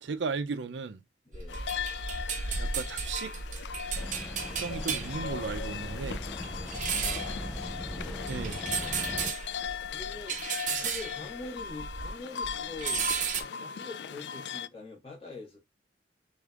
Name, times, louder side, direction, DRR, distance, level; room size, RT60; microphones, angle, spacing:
voice 1, 0.0-1.0 2.6-3.3 4.6-6.2 8.3-8.6, right 4 dB, 85° right, 0.5 m, -35 dB
voice 2, 1.2-1.6 6.9-7.6 8.0-8.5 9.9-10.4 10.7-13.1 13.6-15.6, left 3 dB, 35° left, 1.7 m, -44 dB
sound 1, 1.3-12.2 12.4-13.4, right 5 dB, 45° right, 0.8 m, -35 dB
sound 2, 1.5-14.7, left 7 dB, 75° left, 0.3 m, -38 dB
sound 3, 3.9-9.3, equal, ahead, 0.3 m, -40 dB
5.1 x 3.5 x 2.4 m
head